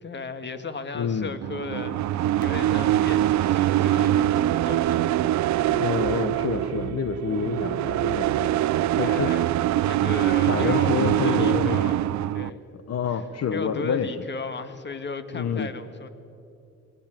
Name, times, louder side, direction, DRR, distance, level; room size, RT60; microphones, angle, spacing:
voice 1, 0.0-5.2 9.0-9.4 9.8-12.0 12.3-12.6 13.1-13.2 13.5-16.1, left 4 dB, 35° left, 10 dB, 1.8 m, -35 dB
voice 2, 0.9-1.3 5.7-8.6 9.0-9.3 10.5-11.9 12.7-14.1 15.3-15.7, left 7 dB, 55° left, 11 dB, 1.1 m, -28 dB
sound 1, 1.4-12.5, right 13 dB, 65° right, 0.6 m, -23 dB
22.5 x 19.0 x 9.0 m, 2.6 s
cardioid pair, 90°, 30 cm